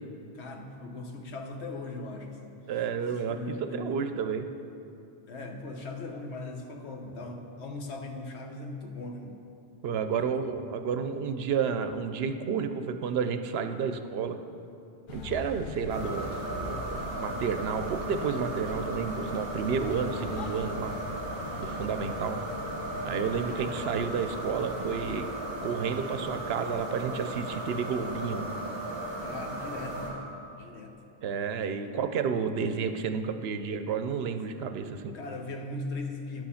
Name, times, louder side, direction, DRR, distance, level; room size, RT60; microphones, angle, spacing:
voice 1, 0.3-2.6 3.1-4.2 5.3-9.4 9.9-10.5 29.2-30.2 30.6-30.9 35.1-36.4, left 2 dB, 85° left, 3 dB, 1.2 m, -39 dB
voice 2, 2.7-4.5 9.8-14.4 15.1-20.9 21.6-22.4 23.0-25.3 25.6-28.5 31.2-35.1, right 6 dB, 70° right, 8 dB, 0.8 m, -31 dB
sound 1, 15.1-25.2, left 3 dB, 55° left, 0.7 m, -42 dB
sound 2, 15.9-30.1, right 1 dB, 30° right, 2.6 m, -36 dB
10.5 x 6.4 x 5.7 m, 2.7 s
omnidirectional pair, 1.1 m